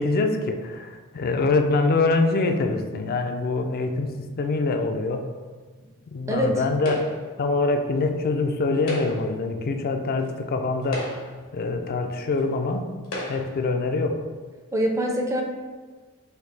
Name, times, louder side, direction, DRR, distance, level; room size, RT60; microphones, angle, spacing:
voice 1, 0.0-5.3 6.1-7.1 7.4-11.1 11.5-12.9 13.3-14.2, left 3 dB, 45° left, 6 dB, 0.4 m, -24 dB
voice 2, 6.3-6.6 14.7-15.4, right 1 dB, 15° right, 1 dB, 0.5 m, -24 dB
sound 1, 6.8-7.4 8.7-9.4 10.2-10.3 10.8-11.5 12.4-12.5 13.0-13.6, left 1 dB, 80° left, 1.1 m, -34 dB
4.4 x 2.7 x 3.9 m, 1.4 s
head